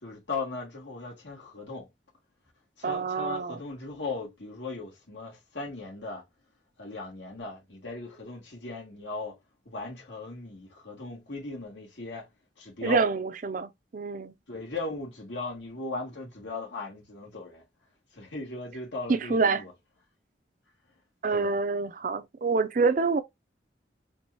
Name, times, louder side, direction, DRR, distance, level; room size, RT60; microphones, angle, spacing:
voice 1, 0.0-1.9 2.8-6.2 6.8-9.4 9.6-12.3 12.6-13.0 14.5-17.6 18.1-19.7 21.3-21.5, left 3 dB, 85° left, 2.5 m, -38 dB
voice 2, 2.8-3.6 12.8-14.3 19.1-19.6 21.2-23.2, right 4 dB, 45° right, 0.4 m, -26 dB
4.5 x 3.9 x 2.7 m
head